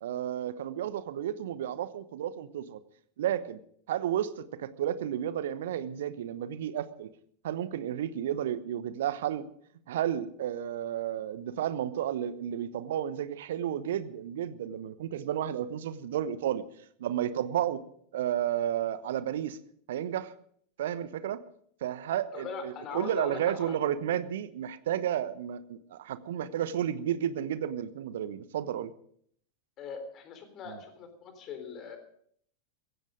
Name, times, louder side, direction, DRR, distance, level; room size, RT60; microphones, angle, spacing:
voice 1, 0.0-2.8 3.2-3.6 3.9-7.1 7.4-9.5 9.9-16.6 17.0-17.8 18.1-19.6 19.9-20.3 20.8-21.4 21.8-28.9 30.7-30.8, right 10 dB, 60° right, 15 dB, 1.1 m, -32 dB
voice 2, 22.3-23.8 29.8-32.0, left 6 dB, 30° left, 7 dB, 3.8 m, -40 dB
16.0 x 16.0 x 5.1 m, 0.64 s
figure-of-eight pair, 90°, 0 cm